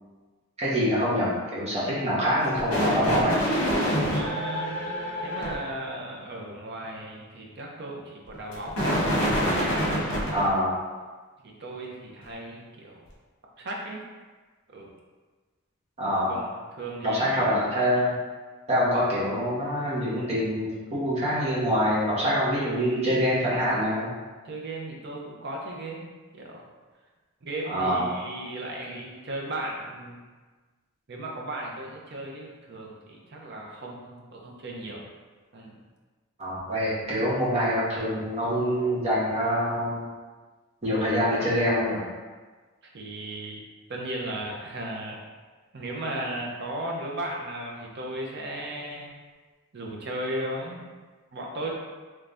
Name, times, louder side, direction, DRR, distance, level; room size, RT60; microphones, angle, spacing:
voice 1, 0.6-3.3 10.3-10.8 16.0-16.4 17.0-18.2 18.7-24.1 27.6-28.1 36.4-40.0 40.8-42.0, equal, 30° right, -9 dB, 1.1 m, -25 dB
sound 1, 2.3-5.5 8.3-10.5, equal, 70° left, 1.0 m, -26 dB
voice 2, 4.1-4.8 5.2-10.4 11.6-13.0 13.6-14.0 14.7-14.9 16.2-17.7 24.4-26.1 26.3-26.6 27.4-30.2 31.1-35.1 35.5-35.7 42.8-43.6 43.9-45.2 45.7-49.1 49.7-50.8 51.3-51.7, right 1 dB, 50° right, -2 dB, 0.6 m, -36 dB
3.3 x 3.2 x 2.5 m, 1.3 s
head